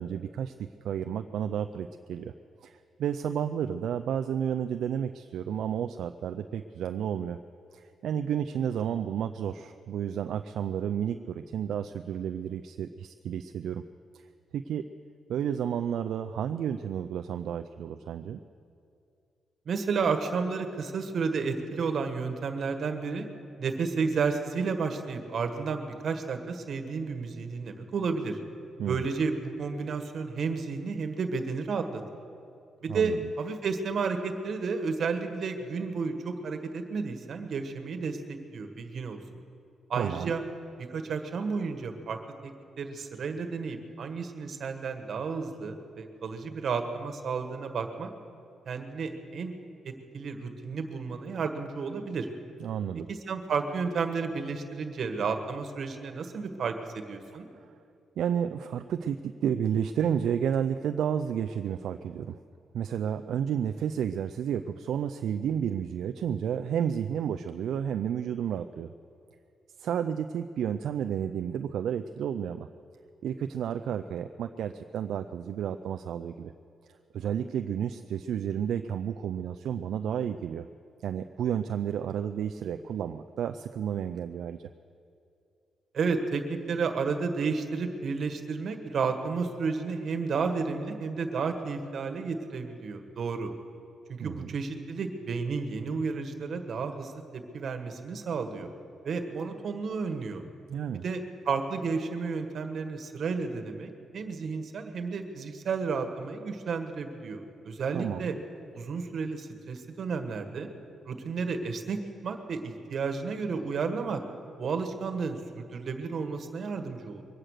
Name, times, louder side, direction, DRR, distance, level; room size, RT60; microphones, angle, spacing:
voice 1, 0.0-2.3 2.6-7.4 7.7-13.8 14.5-14.9 15.3-18.4 28.8-29.0 32.9-33.2 39.9-40.3 52.6-53.1 57.6-57.7 58.2-62.4 62.7-68.9 69.8-72.7 73.2-76.5 77.1-80.7 81.0-84.7 94.2-94.5 100.7-101.0 107.9-108.3, right 8 dB, 80° right, 8 dB, 0.4 m, -31 dB
voice 2, 19.6-23.3 23.6-28.4 28.8-32.0 32.8-38.2 38.5-39.2 39.9-40.4 40.8-48.1 48.7-49.5 49.8-52.3 53.1-57.5 85.9-93.5 94.1-98.7 99.0-100.4 101.0-108.4 108.7-110.7 111.0-112.0 112.2-114.2 114.6-117.3, right 5 dB, 60° right, 6 dB, 1.6 m, -32 dB
23.0 x 8.9 x 6.6 m, 2.6 s
cardioid pair, 95°, 0 cm